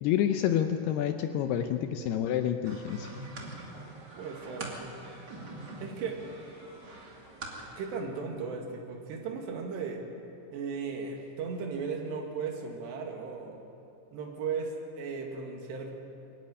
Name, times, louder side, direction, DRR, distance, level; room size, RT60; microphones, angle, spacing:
voice 1, 0.0-3.1, left 10 dB, 75° left, 6 dB, 2.5 m, -28 dB
sound 1, 2.6-7.9, right 2 dB, 35° right, 2.2 m, -44 dB
voice 2, 4.1-4.9 5.8-6.2 7.8-10.0 10.5-13.6 14.1-15.9, right 5 dB, 70° right, 1 dB, 4.1 m, -36 dB
23.0 x 13.0 x 9.7 m, 2.8 s
omnidirectional pair, 5.2 m